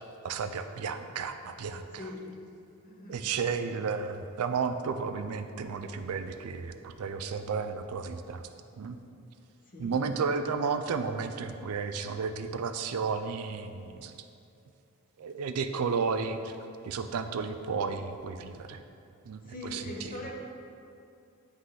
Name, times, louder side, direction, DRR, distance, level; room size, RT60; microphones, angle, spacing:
voice 1, 0.2-2.1 3.1-8.5 8.8-9.0 9.8-14.1 15.2-16.5 16.8-18.8 19.3-19.8, right 5 dB, 85° right, 8 dB, 0.4 m, -33 dB
voice 2, 1.9-2.3 2.8-3.2 9.7-10.0 19.4-20.3, left 2 dB, 40° left, -1 dB, 0.8 m, -41 dB
9.4 x 3.2 x 3.8 m, 2.6 s
head